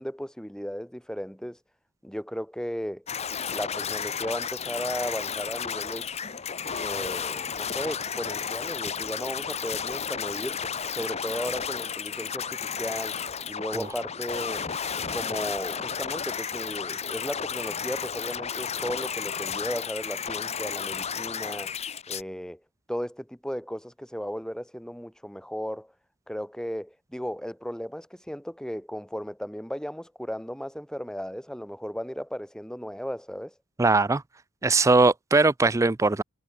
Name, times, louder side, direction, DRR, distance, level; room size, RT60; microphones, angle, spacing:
voice 1, 0.0-1.6 2.0-3.0 3.5-6.1 6.8-10.6 10.9-13.2 13.5-14.7 15.1-21.7 22.1-22.6 22.9-25.9 26.3-33.5, equal, 5° left, 3.9 m, -35 dB
sound 1, 3.1-22.2, left 7 dB, 30° left, 0.9 m, -33 dB
voice 2, 33.8-34.2 34.6-36.2, right 3 dB, 15° right, 0.4 m, -20 dB
head